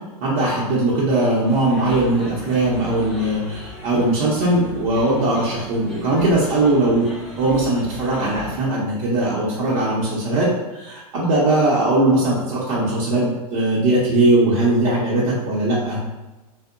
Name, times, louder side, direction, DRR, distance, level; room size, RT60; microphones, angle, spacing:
voice 1, 0.2-7.0 7.4-16.1, right 2 dB, 60° right, -7 dB, 0.7 m, -20 dB
sound 1, 1.4-8.5, left 1 dB, ahead, 0.4 m, -39 dB
2.7 x 2.0 x 2.4 m, 1.1 s
hypercardioid pair, 125°, 19 cm